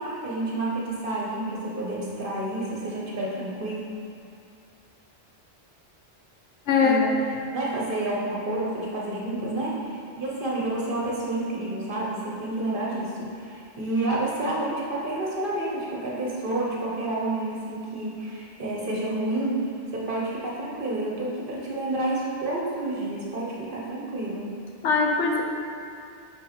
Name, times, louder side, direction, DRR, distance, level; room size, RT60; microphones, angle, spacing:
voice 1, 0.0-3.8 6.8-7.1 7.5-24.5, right 2 dB, 50° right, -5 dB, 1.3 m, -29 dB
voice 2, 6.7-7.2 24.8-25.4, left 5 dB, 90° left, 1 dB, 1.1 m, -21 dB
5.6 x 4.6 x 5.0 m, 2.5 s
omnidirectional pair, 1.2 m